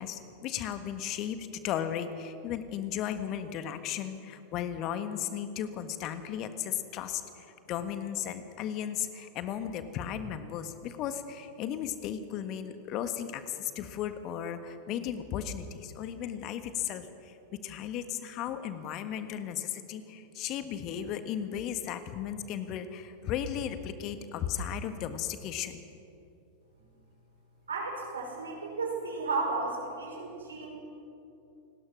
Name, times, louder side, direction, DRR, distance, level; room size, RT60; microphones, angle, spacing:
voice 1, 0.0-25.8, left 9 dB, 40° left, 10 dB, 1.5 m, -35 dB
voice 2, 27.7-30.7, right 3 dB, 70° right, -1 dB, 5.7 m, -33 dB
29.0 x 19.5 x 6.2 m, 2.8 s
figure-of-eight pair, 90°, 0 cm